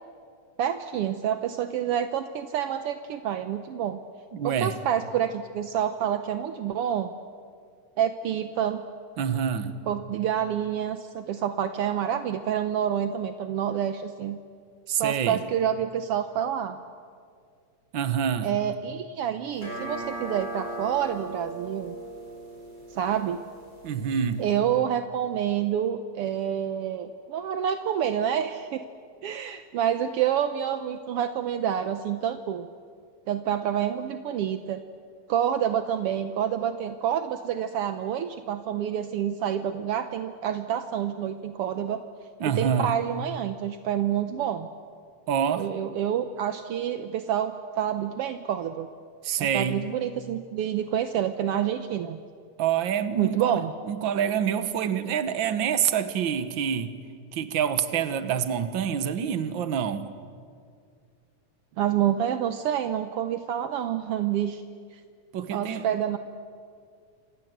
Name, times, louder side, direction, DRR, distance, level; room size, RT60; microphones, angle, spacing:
voice 1, 0.6-4.0 4.4-7.1 8.0-8.8 9.9-14.4 14.9-16.8 18.4-21.9 22.9-23.4 24.4-28.8 29.2-32.7 33.3-34.8 35.3-42.0 42.4-44.7 45.6-48.9 49.4-52.2 53.2-53.7 61.8-64.6 64.9-65.0 65.5-66.2, right 9 dB, 75° right, 9 dB, 1.4 m, -28 dB
voice 2, 4.3-4.8 9.2-9.7 14.9-15.4 17.9-18.5 23.8-24.5 42.4-43.0 45.3-45.7 49.2-49.9 52.6-53.6 53.8-57.0 57.3-60.1 65.3-65.9, right 8 dB, 55° right, 11 dB, 1.5 m, -27 dB
sound 1, 19.5-24.6, right 2 dB, 25° left, 5.0 m, -38 dB
27.5 x 26.5 x 8.0 m, 2.2 s
omnidirectional pair, 3.6 m